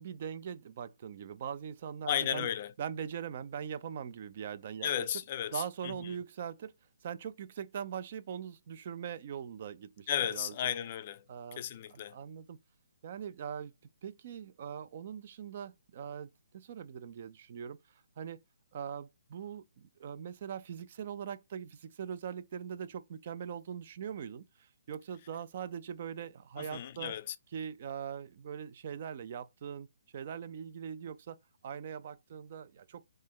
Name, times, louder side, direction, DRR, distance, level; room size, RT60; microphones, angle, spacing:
voice 1, 0.0-2.5 2.8-4.9 5.5-6.7 7.0-10.5 11.3-11.6 11.9-12.6 13.0-13.7 14.0-17.8 18.2-18.4 18.7-27.1 27.5-29.9 30.1-31.4 31.6-33.0, right 8 dB, 45° right, 0.3 m, -41 dB
voice 2, 2.1-2.7 4.8-6.1 10.1-11.2 11.6-12.2 26.6-27.3, left 10 dB, 40° left, 0.3 m, -34 dB
3.2 x 2.1 x 3.5 m
figure-of-eight pair, 135°, 0 cm